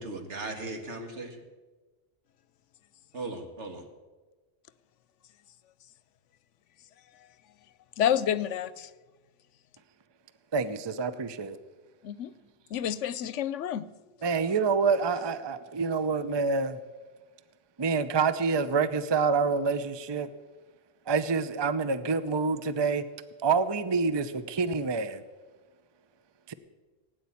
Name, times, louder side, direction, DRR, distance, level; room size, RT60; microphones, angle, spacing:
voice 1, 0.0-1.4 3.1-3.8, right 2 dB, 70° right, 4 dB, 2.2 m, -37 dB
voice 2, 8.0-8.9 12.0-12.3 12.7-13.8, left 9 dB, 80° left, 17 dB, 1.0 m, -28 dB
voice 3, 10.5-11.6 14.2-16.8 17.8-20.3 21.1-23.0 23.4-25.2 26.5-26.6, right 5 dB, 30° right, 12 dB, 0.6 m, -27 dB
17.5 x 9.5 x 8.4 m, 1.3 s
omnidirectional pair, 1.2 m